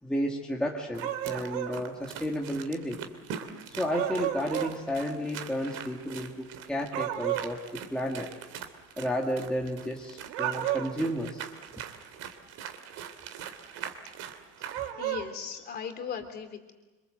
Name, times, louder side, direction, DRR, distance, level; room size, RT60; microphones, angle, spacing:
voice 1, 0.0-3.0 3.7-8.3 9.0-11.5, equal, ahead, -2 dB, 1.9 m, -32 dB
sound 1, 0.9-14.9, right 8 dB, 45° right, 3.0 m, -43 dB
sound 2, 1.0-1.8 3.9-4.8 6.9-7.6 10.3-11.1 14.7-15.3, right 13 dB, 65° right, 2.7 m, -32 dB
voice 2, 15.0-16.7, left 7 dB, 25° left, 7 dB, 3.1 m, -38 dB
27.0 x 26.0 x 7.9 m, 1.2 s
cardioid pair, 175°, 35 cm